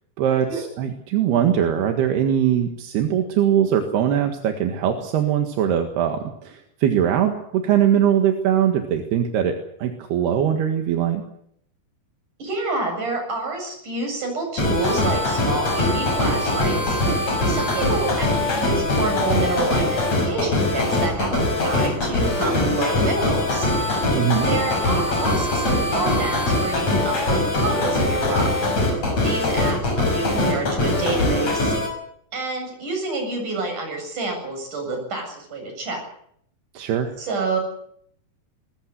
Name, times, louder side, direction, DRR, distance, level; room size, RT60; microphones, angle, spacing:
voice 1, 0.2-11.2 24.1-24.5 36.7-37.1, right 9 dB, 80° right, 5 dB, 3.8 m, -21 dB
voice 2, 12.4-17.0 17.5-23.7 24.5-28.5 29.2-31.7 32.3-36.0 37.2-37.6, right 3 dB, 50° right, 3 dB, 9.2 m, -28 dB
sound 1, 14.6-31.9, left 2 dB, 40° left, 7.0 m, -22 dB
21.0 x 20.0 x 8.2 m, 0.69 s
omnidirectional pair, 4.6 m